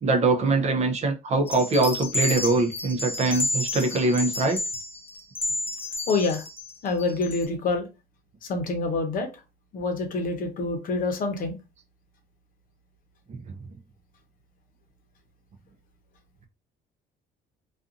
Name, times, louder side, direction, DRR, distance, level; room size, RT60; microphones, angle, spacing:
voice 1, 0.0-4.6 13.3-13.4, right 3 dB, 40° right, 0.6 m, -23 dB
sound 1, 1.5-7.4, left 2 dB, 10° left, 0.7 m, -31 dB
voice 2, 6.1-6.4 6.8-7.9 8.4-9.3 9.7-11.6, left 3 dB, 55° left, 0.8 m, -26 dB
2.5 x 2.4 x 2.5 m
cardioid pair, 110°, 17 cm